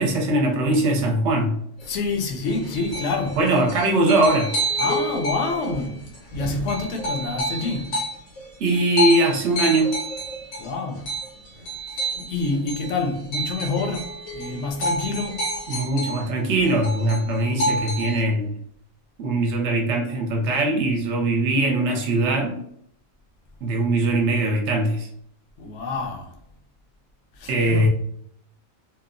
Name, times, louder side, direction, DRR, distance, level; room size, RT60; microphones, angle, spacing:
voice 1, 0.0-1.5 3.4-4.5 8.6-9.9 15.7-18.5 19.2-22.6 23.6-25.1 27.5-27.9, right 2 dB, 65° right, 0.8 m, -21 dB
sound 1, 1.8-16.3 16.6-18.2, equal, 90° left, 1.3 m, -29 dB
voice 2, 1.9-3.4 4.8-6.0 6.3-7.9 10.6-11.1 12.2-15.5 25.6-26.3 27.4-27.9, left 3 dB, 65° left, 0.8 m, -27 dB
2.8 x 2.0 x 2.5 m
omnidirectional pair, 1.4 m